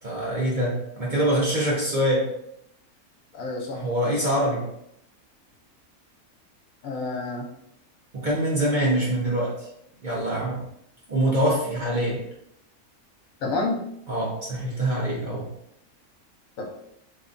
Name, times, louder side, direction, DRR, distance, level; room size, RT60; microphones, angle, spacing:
voice 1, 0.0-2.3 3.7-4.6 8.1-9.7 10.0-10.6 11.1-12.2 14.1-15.5, right 1 dB, 45° right, -4 dB, 0.7 m, -24 dB
voice 2, 3.3-3.8 6.8-7.5 13.4-13.8 16.6-16.7, left 3 dB, 70° left, 0 dB, 1.2 m, -28 dB
3.4 x 2.3 x 3.8 m, 0.76 s
omnidirectional pair, 1.5 m